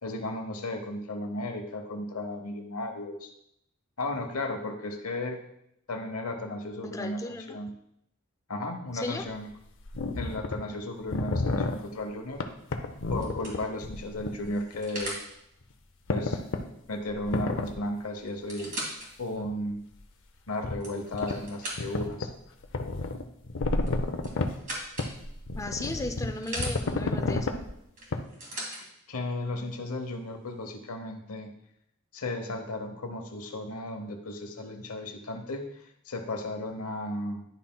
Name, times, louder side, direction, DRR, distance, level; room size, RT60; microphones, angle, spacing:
voice 1, 0.0-3.3 4.0-5.4 5.9-7.7 8.5-9.5 10.2-12.4 13.1-15.2 16.1-16.4 16.9-18.7 19.2-19.8 20.5-22.3 28.5-28.6 29.1-31.5 32.1-37.5, left 1 dB, 85° left, 5 dB, 1.0 m, -34 dB
voice 2, 6.8-7.6 8.9-9.2 25.6-27.6, left 2 dB, 15° left, 6 dB, 0.5 m, -36 dB
sound 1, 8.9-9.0 9.8-10.6 11.0-11.8 12.4-14.4 14.7-14.8 16.1-16.6 17.2-17.8 19.4-19.5 20.6-20.8 21.1-21.4 21.8-22.3 22.6-24.5 25.0-27.6 28.1-28.2, left 2 dB, 60° left, 0.6 m, -30 dB
sound 2, 12.3-12.6 13.2-15.3 17.3-17.4 17.7-17.8 18.3-19.1 19.7-19.8 20.5-22.1 23.8-25.1 25.8-26.7 28.0-28.8 29.7-29.8, right 1 dB, 40° right, 2.1 m, -39 dB
9.9 x 5.7 x 2.3 m, 0.77 s
head